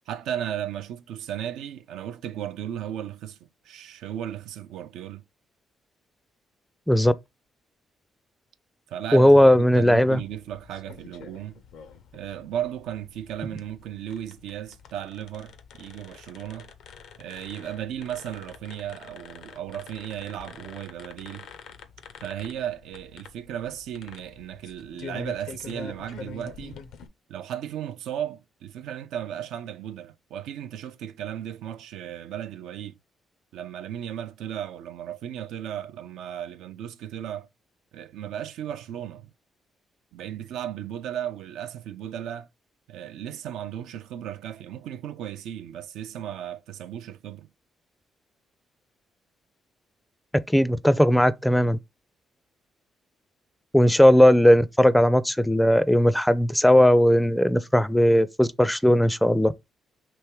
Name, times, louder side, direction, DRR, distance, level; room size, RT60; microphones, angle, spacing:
voice 1, 0.1-5.2 8.9-11.6 12.1-16.7 17.2-21.5 22.2-26.8 27.3-33.0 33.5-37.5 37.9-39.3 40.1-42.5 42.9-47.5, right 10 dB, 85° right, 0.4 m, -35 dB
voice 2, 9.1-10.2 50.5-51.8 53.7-59.5, equal, 5° left, 0.3 m, -18 dB
sound 1, 9.8-27.1, left 5 dB, 80° left, 0.6 m, -46 dB
3.4 x 2.9 x 4.6 m
cardioid pair, 90°, 0 cm